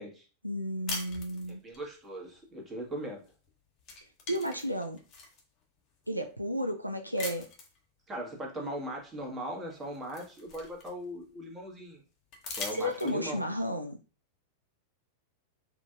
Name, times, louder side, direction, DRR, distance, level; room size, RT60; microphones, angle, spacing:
voice 1, 0.4-1.6 4.3-5.0 6.1-7.5 12.8-14.0, equal, 90° right, 0.3 m, -32 dB
sound 1, 0.9-1.9 3.3-3.5 3.8-5.4 6.0-6.1 7.2-7.8 9.2-9.3 9.7-11.2 12.3-13.4, left 3 dB, 35° left, 1.1 m, -41 dB
voice 2, 1.6-3.2 8.1-12.0 12.6-13.4, equal, 20° right, 1.4 m, -39 dB
4.2 x 2.6 x 2.5 m
figure-of-eight pair, 90°, 0 cm